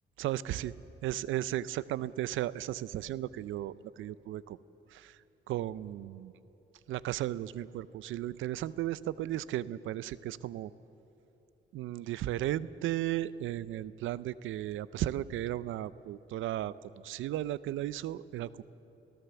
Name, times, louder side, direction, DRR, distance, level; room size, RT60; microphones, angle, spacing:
voice 1, 0.2-0.7 1.0-4.6 4.9-5.2 5.5-6.3 6.9-10.7 11.7-18.6, right 13 dB, 80° right, 18 dB, 0.5 m, -35 dB
23.5 x 16.5 x 7.0 m, 2.9 s
cardioid pair, 90°, 20 cm